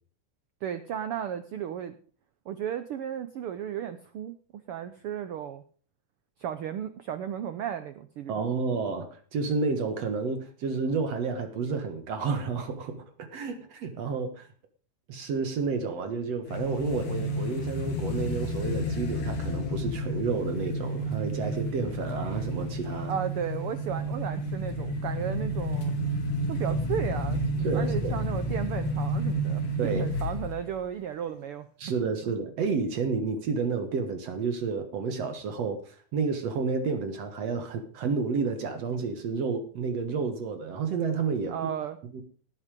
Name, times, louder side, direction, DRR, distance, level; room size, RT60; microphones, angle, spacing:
voice 1, 0.6-2.0 2.5-5.6 6.4-8.3 23.1-25.9 26.5-27.4 27.7-31.7 32.2-32.3 41.5-42.0, right 9 dB, 90° right, 10 dB, 1.2 m, -34 dB
voice 2, 8.3-14.5 15.1-23.1 27.6-28.2 29.8-30.0 31.8-41.5 42.1-42.2, right 5 dB, 60° right, 8 dB, 2.4 m, -30 dB
sound 1, 16.5-30.7, equal, 90° left, 4.0 m, -31 dB
18.0 x 8.3 x 5.2 m, 0.42 s
omnidirectional pair, 3.6 m